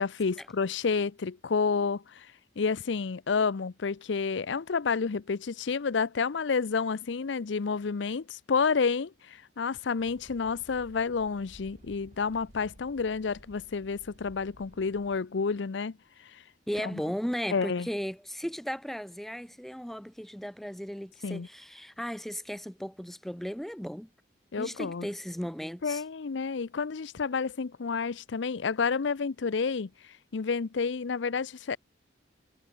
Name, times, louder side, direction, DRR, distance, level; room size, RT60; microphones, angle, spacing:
voice 1, 0.0-2.3 2.6-16.0 16.2-16.4 16.8-17.0 17.5-17.9 21.2-21.5 24.5-25.1 25.8-29.9 30.3-31.8, left 5 dB, 75° left, 0.6 m, -30 dB
sound 1, 10.0-15.2, equal, 35° right, 2.9 m, -55 dB
voice 2, 16.7-24.1 24.6-26.0, equal, ahead, 0.4 m, -36 dB
head